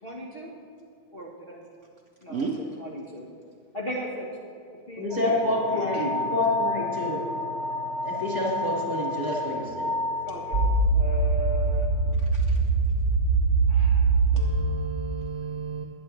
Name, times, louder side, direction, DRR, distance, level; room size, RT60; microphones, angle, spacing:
voice 1, 0.0-0.5 1.1-1.6 2.2-3.3 3.7-4.3 4.6-6.1 10.3-10.6 10.9-11.9 13.7-14.2, equal, 30° left, -4 dB, 1.5 m, -36 dB
voice 2, 5.0-7.2 8.0-9.9, left 2 dB, 20° right, -3 dB, 2.1 m, -28 dB
sound 1, 5.1-14.6, right 2 dB, 40° right, 1.6 m, -25 dB
voice 3, 14.3-15.8, right 6 dB, 65° right, 1 dB, 0.7 m, -33 dB
21.5 x 9.2 x 3.3 m, 2.2 s
omnidirectional pair, 2.2 m